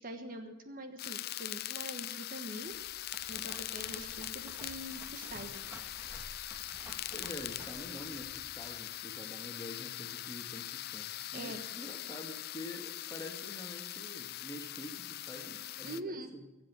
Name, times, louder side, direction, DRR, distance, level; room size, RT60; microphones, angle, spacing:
voice 1, 0.0-2.7 3.3-5.6 11.3-11.6 15.8-16.3, right 1 dB, 45° right, 6 dB, 1.4 m, -44 dB
sound 1, 1.0-16.0, left 14 dB, 50° left, 0.4 m, -42 dB
sound 2, 2.6-9.0, equal, 10° right, 2.1 m, -52 dB
voice 2, 7.1-16.5, left 1 dB, 15° left, 2 dB, 2.1 m, -47 dB
23.0 x 7.7 x 7.6 m, 1.2 s
head